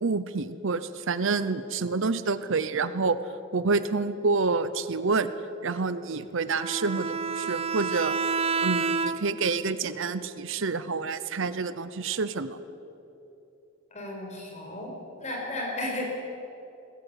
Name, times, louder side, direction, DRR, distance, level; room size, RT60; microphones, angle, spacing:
voice 1, 0.0-3.2 3.5-5.3 5.6-8.1 8.6-12.6, right 4 dB, 65° right, 14 dB, 0.8 m, -28 dB
Bowed string instrument, 6.5-9.5, right 5 dB, 30° right, 0.7 m, -29 dB
voice 2, 13.9-14.9 15.2-16.1, left 1 dB, 35° left, -1 dB, 5.2 m, -34 dB
20.0 x 16.5 x 9.1 m, 3.0 s
head